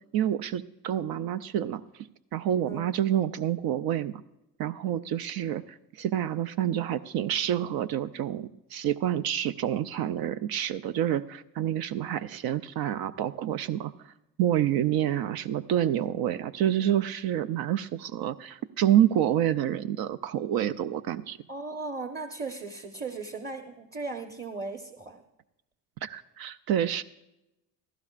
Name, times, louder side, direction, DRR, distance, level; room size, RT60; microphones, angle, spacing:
voice 1, 0.1-1.8 2.3-4.2 4.6-13.9 14.4-21.4 26.0-27.0, right 11 dB, 60° right, 13 dB, 0.5 m, -28 dB
voice 2, 2.6-2.9 21.5-25.2, right 3 dB, 25° right, 6 dB, 1.1 m, -37 dB
17.0 x 14.5 x 2.5 m, 0.92 s
hypercardioid pair, 65°, 41 cm